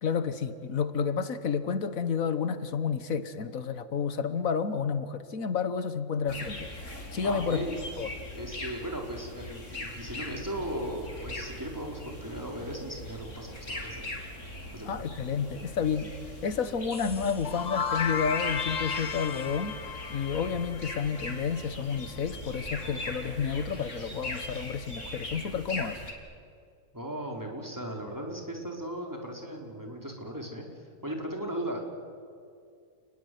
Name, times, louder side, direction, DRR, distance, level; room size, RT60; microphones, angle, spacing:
voice 1, 0.0-6.7 7.1-7.7 8.0-8.1 14.8-16.1 16.4-19.8 20.1-26.0, left 6 dB, 90° left, 12 dB, 1.7 m, -30 dB
sound 1, 6.3-26.1, left 1 dB, 65° left, 4.2 m, -40 dB
voice 2, 7.2-7.8 8.3-14.1 14.7-15.0 26.9-30.7 31.0-31.8, right 1 dB, 15° right, 1 dB, 4.6 m, -37 dB
sound 2, 16.9-21.7, left 6 dB, 40° left, 0.8 m, -34 dB
29.5 x 20.5 x 9.5 m, 2.3 s
omnidirectional pair, 1.4 m